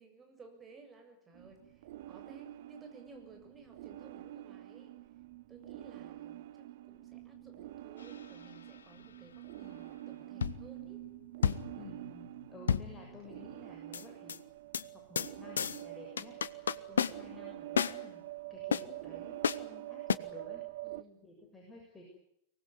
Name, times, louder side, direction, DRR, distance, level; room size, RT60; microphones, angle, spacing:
voice 1, 0.0-5.0 5.5-11.1 20.8-21.2, right 3 dB, 20° right, 4 dB, 7.5 m, -57 dB
sound 1, 1.3-21.0, right 15 dB, 55° right, 1.1 m, -47 dB
sound 2, 8.0-8.5 10.4-10.9 11.4-13.5 13.9-14.4 14.7-14.9 15.2-15.3 15.6-15.8 16.2-17.4 17.8-18.0 18.7-18.8 19.4-19.6 20.1-20.2, left 7 dB, 70° left, 0.9 m, -32 dB
voice 2, 11.8-14.4 15.1-18.2 18.5-20.6 21.2-22.0, left 2 dB, 10° left, -1 dB, 7.2 m, -53 dB
24.5 x 19.5 x 9.4 m, 0.76 s
figure-of-eight pair, 90°, 0 cm